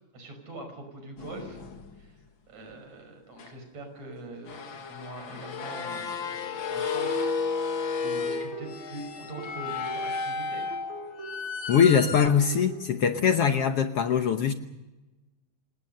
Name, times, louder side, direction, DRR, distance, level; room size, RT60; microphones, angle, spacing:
voice 1, 0.1-1.7 1.9-2.2 2.5-10.7, right 2 dB, 60° right, 6 dB, 6.4 m, -43 dB
sound 1, 1.2-2.0 3.4-3.5 4.5-12.3, left 4 dB, 45° left, 2.2 m, -33 dB
sound 2, 8.0-12.9, right 3 dB, 45° right, 4.8 m, -43 dB
voice 2, 11.7-14.5, left 7 dB, 60° left, 7 dB, 1.7 m, -22 dB
28.0 x 18.5 x 6.7 m, 1.0 s
omnidirectional pair, 3.5 m